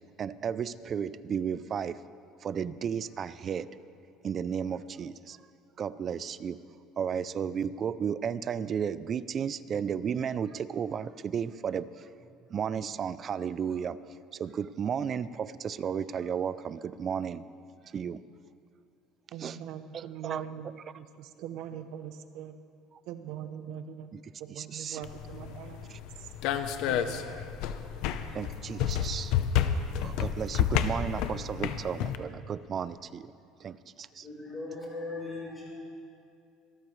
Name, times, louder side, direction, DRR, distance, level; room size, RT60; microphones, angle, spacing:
voice 1, 0.2-2.0 2.4-3.7 4.2-5.4 5.8-6.6 7.0-12.1 12.5-14.0 14.3-17.4 17.9-18.2 19.4-19.6 19.9-20.9 24.1-25.0 25.9-26.0 28.3-29.4 30.0-33.3 33.6-34.3, right 7 dB, 30° right, 16 dB, 0.3 m, -34 dB
voice 2, 19.3-22.5 23.1-24.1 24.4-25.9 26.2-26.3 26.8-27.3, right 9 dB, 60° right, 10 dB, 0.7 m, -42 dB
sound 1, 25.0-32.2, left 9 dB, 60° left, 0.7 m, -30 dB
voice 3, 34.2-35.7, left 2 dB, 15° left, -3 dB, 3.8 m, -38 dB
25.0 x 13.5 x 3.2 m, 2.4 s
cardioid pair, 165°, 0 cm